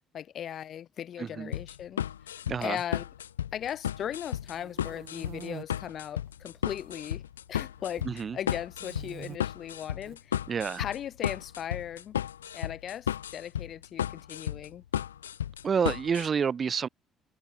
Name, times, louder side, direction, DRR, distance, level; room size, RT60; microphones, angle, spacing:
voice 1, 0.1-3.0 3.5-7.2 7.5-10.4 10.8-12.2 12.5-14.8, left 10 dB, 55° left, 0.8 m, -38 dB
voice 2, 1.2-1.5 2.5-2.8 8.0-8.4 10.5-10.8 15.6-16.9, right 6 dB, 45° right, 0.3 m, -29 dB
sound 1, 1.5-16.3, left 10 dB, 85° left, 0.7 m, -34 dB
sound 2, 4.2-5.6 6.3-6.9 7.2-8.2 8.8-9.4 9.9-10.2 11.3-12.2, right 12 dB, 60° right, 0.7 m, -46 dB
hypercardioid pair, 50°, 0 cm